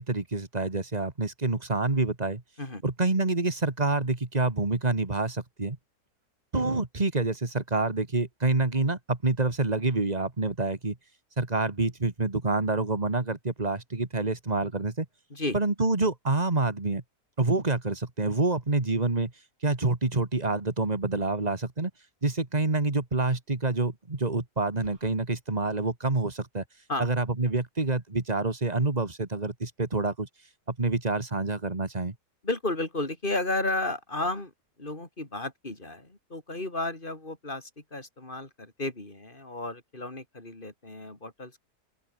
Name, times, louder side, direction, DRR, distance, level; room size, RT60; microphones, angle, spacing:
voice 1, 0.0-2.4 2.8-5.8 6.5-11.0 11.4-15.1 15.5-17.0 17.4-19.3 19.6-21.9 22.2-26.6 27.0-30.3 30.7-32.1, right 3 dB, 25° right, 2.3 m, -27 dB
sound 1, 24.8-25.2, right 2 dB, 60° right, 5.3 m, -52 dB
voice 2, 32.4-34.5 34.8-41.7, left 2 dB, 30° left, 4.5 m, -33 dB
open air
omnidirectional pair, 1.8 m